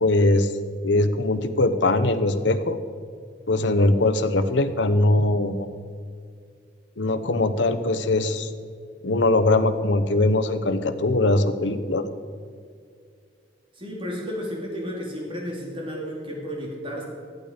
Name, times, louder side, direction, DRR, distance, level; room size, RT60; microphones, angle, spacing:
voice 1, 0.0-0.5 0.8-2.8 3.5-5.7 7.0-8.5 9.0-12.0, left 2 dB, 75° left, 10 dB, 0.9 m, -21 dB
voice 2, 13.8-17.0, equal, 30° right, -1 dB, 2.6 m, -32 dB
14.5 x 11.5 x 5.1 m, 2.2 s
head